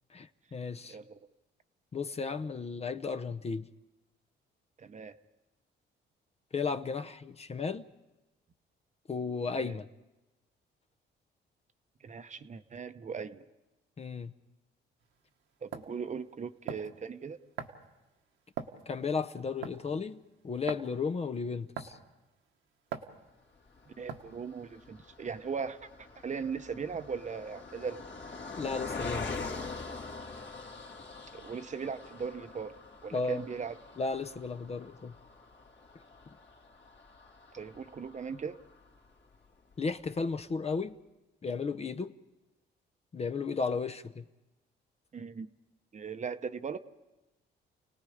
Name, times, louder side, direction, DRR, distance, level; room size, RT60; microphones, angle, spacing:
voice 1, 0.1-1.0 1.9-3.7 6.5-7.9 9.1-9.9 14.0-14.3 18.9-22.0 28.5-29.3 33.1-33.4 34.0-35.1 39.8-41.0 41.4-42.1 43.1-44.2, left 4 dB, 30° left, 0.7 m, -34 dB
voice 2, 0.9-1.2 4.8-5.2 9.6-9.8 12.0-13.4 15.6-17.4 24.0-28.0 31.3-32.8 33.0-33.8 37.5-38.6 45.1-45.5 45.9-46.8, right 6 dB, 35° right, 0.9 m, -39 dB
sound 1, 15.0-15.1 15.7-15.9 16.7-17.0 17.6-17.9 18.6-18.8 19.6-19.9 20.7-20.9 21.8-22.1 22.9-23.1 24.1-24.4, right 8 dB, 80° right, 1.5 m, -39 dB
Car passing by, 23.7-39.2 39.7-39.8 40.1-40.2, left 3 dB, 60° left, 2.6 m, -44 dB
30.0 x 18.5 x 5.0 m
cardioid pair, 90°, 20 cm